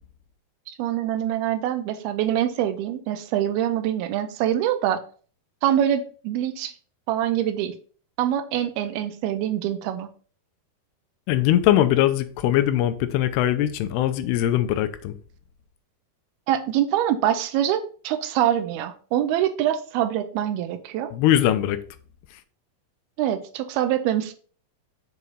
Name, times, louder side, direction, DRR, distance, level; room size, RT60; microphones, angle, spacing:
voice 1, 0.7-5.0 5.6-6.7 7.1-7.7 8.2-10.1 16.5-21.1 23.2-24.3, right 11 dB, 80° right, 2.5 m, -24 dB
voice 2, 11.3-15.2 21.1-21.8 22.3-22.4, left 12 dB, 90° left, 2.7 m, -21 dB
7.5 x 4.7 x 4.0 m
omnidirectional pair, 4.6 m